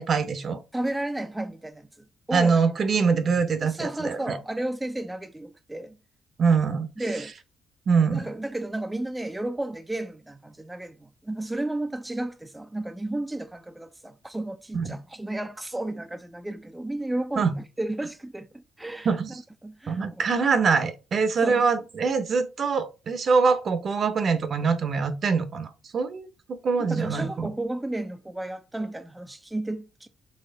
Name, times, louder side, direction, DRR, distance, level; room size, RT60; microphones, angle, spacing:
voice 1, 0.0-0.6 2.3-4.4 6.4-6.9 7.9-8.3 14.7-15.0 17.4-17.5 19.0-19.4 19.9-26.3 26.6-27.5, right 5 dB, 50° right, 0.8 m, -24 dB
voice 2, 0.7-2.6 3.6-6.0 7.0-7.3 8.1-19.2 19.6-20.2 21.4-21.7 26.8-30.1, right 1 dB, 10° right, 0.4 m, -33 dB
4.2 x 3.2 x 3.8 m
cardioid pair, 90°, 0 cm